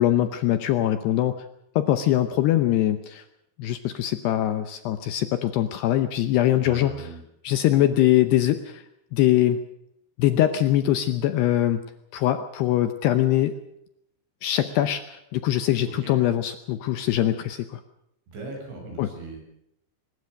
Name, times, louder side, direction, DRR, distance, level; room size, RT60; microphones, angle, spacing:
voice 1, 0.0-1.3 1.8-3.2 3.6-6.9 7.4-8.8 9.1-9.6 10.2-11.8 12.1-13.5 14.4-17.8 19.0-19.1, left 13 dB, 75° left, 10 dB, 2.6 m, -22 dB
voice 2, 6.6-7.2 15.8-16.1 18.3-19.4, right 2 dB, 65° right, 1 dB, 9.4 m, -38 dB
22.5 x 20.5 x 6.5 m, 0.78 s
omnidirectional pair, 5.6 m